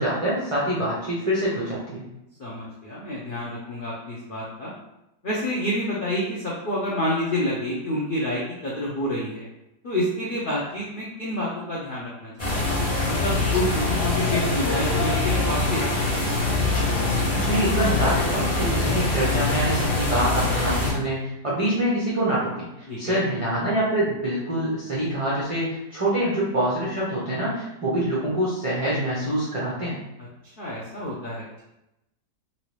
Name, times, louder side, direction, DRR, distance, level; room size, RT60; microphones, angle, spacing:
voice 1, 0.0-2.0 17.3-30.0, right 1 dB, 55° right, -8 dB, 0.3 m, -25 dB
voice 2, 2.4-4.7 5.2-9.5 9.8-12.7 13.1-16.4 22.9-23.2 30.2-31.6, left 1 dB, 70° left, -6 dB, 0.5 m, -29 dB
sound 1, 12.4-20.9, left 2 dB, 25° left, 1.0 m, -23 dB
3.1 x 2.7 x 3.1 m, 0.89 s
omnidirectional pair, 1.8 m